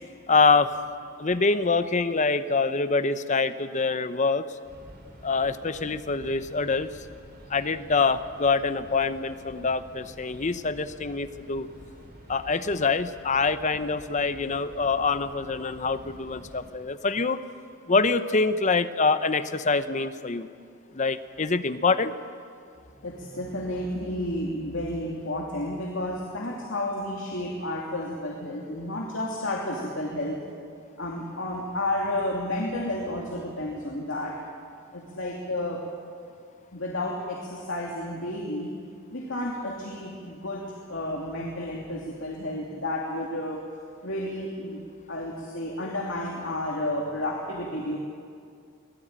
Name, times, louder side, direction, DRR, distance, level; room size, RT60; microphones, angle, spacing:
voice 1, 0.3-0.7 1.2-4.4 5.2-6.9 7.5-11.7 12.3-17.4 17.9-20.5 20.9-22.1, left 4 dB, 35° left, 12 dB, 0.8 m, -25 dB
sound 1, 4.6-16.7, equal, 50° right, 3.6 m, -49 dB
voice 2, 23.0-30.4 31.0-34.3 34.9-35.8 36.7-38.8 39.1-40.6 40.9-43.6 44.0-44.8 45.1-48.0, left 1 dB, 70° left, -2 dB, 2.8 m, -31 dB
24.0 x 18.0 x 8.9 m, 2.3 s
head